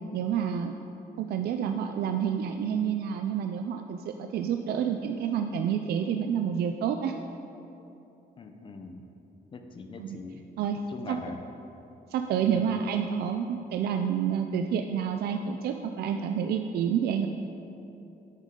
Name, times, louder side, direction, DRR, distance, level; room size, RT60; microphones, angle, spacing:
voice 1, 0.1-0.7 1.2-7.1 10.0-10.2 10.6-10.8 11.1-11.2 12.1-17.3, right 8 dB, 80° right, 5 dB, 0.4 m, -29 dB
voice 2, 8.4-9.1 9.5-10.4 10.8-11.4 12.5-12.7, left 3 dB, 30° left, 6 dB, 0.7 m, -42 dB
9.8 x 9.1 x 3.8 m, 2.9 s
cardioid pair, 165°, 16 cm